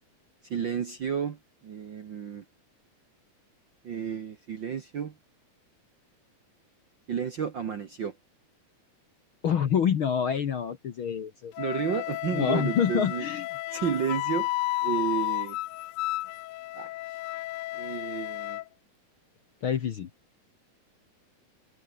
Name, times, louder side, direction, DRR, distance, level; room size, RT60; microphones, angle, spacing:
voice 1, 0.4-2.4 3.8-5.2 7.1-8.2 11.6-13.2 13.7-14.5 14.8-15.6 16.7-17.0 17.7-18.6, right 7 dB, 50° right, 1.4 m, -32 dB
voice 2, 9.4-11.5 12.3-13.4 19.6-20.1, left 8 dB, 55° left, 1.6 m, -27 dB
Wind instrument woodwind instrument, 11.5-18.6, left 17 dB, 85° left, 1.5 m, -32 dB
omnidirectional pair, 3.7 m